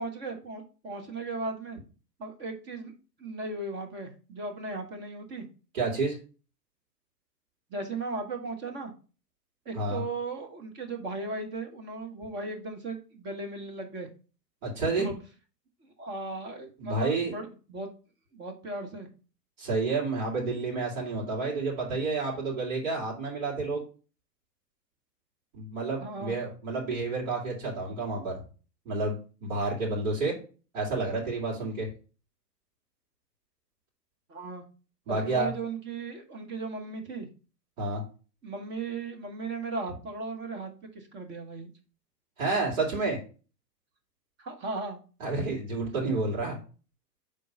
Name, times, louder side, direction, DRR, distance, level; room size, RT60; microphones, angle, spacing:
voice 1, 0.0-1.8 2.2-2.9 3.2-5.5 7.7-8.9 9.6-14.1 15.0-15.1 15.8-17.9 18.3-19.1 26.0-26.4 34.3-34.6 35.1-37.3 38.4-41.7 44.4-45.0, right 3 dB, 20° right, 4 dB, 1.1 m, -36 dB
voice 2, 5.7-6.2 9.7-10.0 14.6-15.1 16.8-17.3 19.6-23.8 25.5-28.4 28.8-30.3 30.7-31.9 35.1-35.5 37.8-38.0 42.4-43.2 45.2-46.6, right 3 dB, 50° right, -4 dB, 2.7 m, -30 dB
5.3 x 3.9 x 5.2 m, 0.35 s
hypercardioid pair, 120°, 50 cm